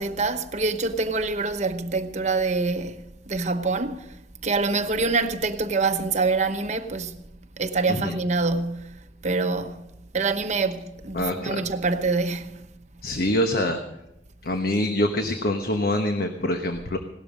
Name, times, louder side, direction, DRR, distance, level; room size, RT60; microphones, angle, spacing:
voice 1, 0.0-4.1 4.4-7.2 7.6-9.9 10.1-12.7, right 3 dB, 40° right, 0.9 m, -26 dB
voice 2, 11.1-11.6 13.0-13.8 14.4-17.0, left 1 dB, 55° left, 1.2 m, -25 dB
18.0 x 12.5 x 5.1 m
head